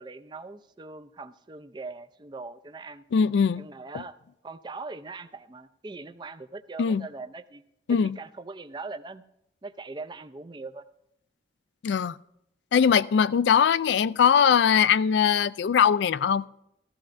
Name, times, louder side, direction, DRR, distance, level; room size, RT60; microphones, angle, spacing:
voice 1, 0.0-3.0 3.5-4.1 4.4-7.6 7.9-9.2 9.6-10.8, right 3 dB, 25° right, 0.4 m, -41 dB
voice 2, 3.1-3.7 3.9-4.0 6.8-7.0 7.9-8.2 11.8-12.2 12.7-16.4, left 7 dB, 70° left, 0.3 m, -21 dB
14.5 x 14.0 x 2.6 m
head